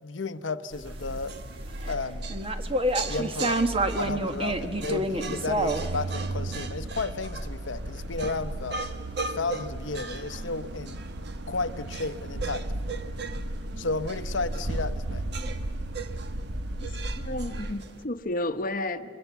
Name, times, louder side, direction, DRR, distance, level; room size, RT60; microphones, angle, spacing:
voice 1, 0.0-1.3 1.9-2.4 3.1-3.6 4.0-8.8 9.3-11.0 11.5-12.7 13.8-15.2, left 3 dB, 80° left, 12 dB, 0.9 m, -33 dB
sound 1, 0.7-1.9 2.3-6.0, right 1 dB, 30° right, 1.2 m, -28 dB
sound 2, 0.9-18.0, right 4 dB, 60° right, 1.3 m, -41 dB
sound 3, 0.9-17.8, right 1 dB, 85° right, 1.1 m, -36 dB
voice 2, 16.8-19.2, left 1 dB, 45° left, 9 dB, 1.0 m, -33 dB
28.5 x 22.5 x 8.2 m, 2.1 s
head